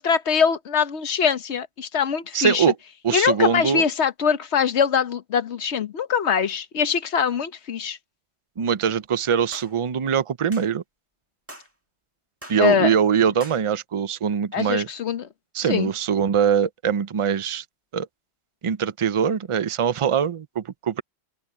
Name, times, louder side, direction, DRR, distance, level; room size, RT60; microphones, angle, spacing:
voice 1, 0.0-2.7 3.1-8.0 12.6-12.9 14.5-15.3 15.6-15.9, left 7 dB, 90° left, 1.3 m, -23 dB
voice 2, 2.3-2.7 3.0-3.8 8.6-10.8 12.5-14.9 15.5-17.6 17.9-18.1 18.6-21.0, right 7 dB, 35° right, 0.5 m, -22 dB
sound 1, 9.5-9.7 10.5-10.7 11.5-11.7 12.4-12.6 13.4-13.6, right 1 dB, 10° right, 1.9 m, -42 dB
open air
omnidirectional pair, 1.1 m